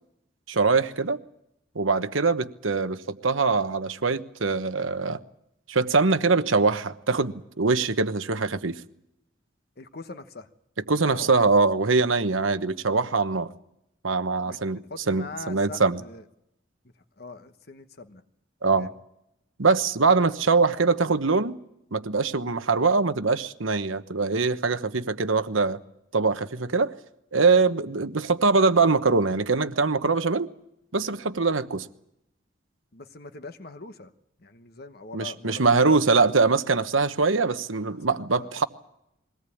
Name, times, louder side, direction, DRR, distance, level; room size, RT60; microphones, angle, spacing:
voice 1, 0.5-1.2 1.7-5.2 5.7-8.8 10.9-13.5 14.0-14.8 15.1-16.0 18.6-18.9 19.6-21.6 21.9-25.8 26.1-26.9 27.3-30.5 30.9-31.9 35.1-38.6, right 4 dB, 90° right, 1.1 m, -23 dB
voice 2, 9.8-10.5 11.1-11.3 14.4-14.6 14.9-16.2 17.2-18.2 18.7-18.9 22.6-22.7 32.9-34.1 34.4-36.0 37.9-38.6, left 3 dB, 50° left, 1.1 m, -42 dB
22.5 x 18.0 x 8.6 m
head